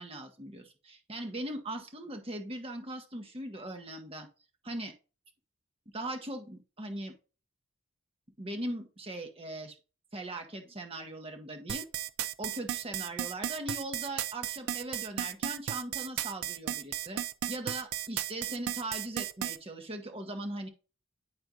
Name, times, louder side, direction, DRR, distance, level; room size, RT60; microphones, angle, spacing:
voice 1, 0.0-4.3 4.6-4.9 5.9-7.1 8.4-9.8 10.1-11.9 12.4-17.2 17.5-20.7, right 1 dB, 25° right, 4 dB, 1.1 m, -39 dB
sound 1, 11.7-19.6, right 11 dB, 90° right, 0.4 m, -34 dB
10.5 x 4.3 x 2.5 m, 0.33 s
head